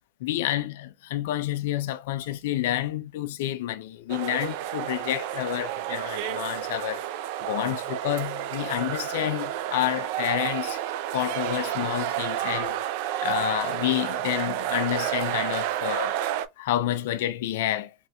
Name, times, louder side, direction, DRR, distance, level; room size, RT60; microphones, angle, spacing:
voice 1, 0.2-7.1 7.4-10.8 11.1-12.8 13.2-16.2 16.6-17.9, left 13 dB, 70° left, 0.4 m, -29 dB
sound 1, 4.1-16.5, right 12 dB, 60° right, 0.3 m, -30 dB
3.1 x 2.8 x 2.2 m
supercardioid pair, 150°, 0 cm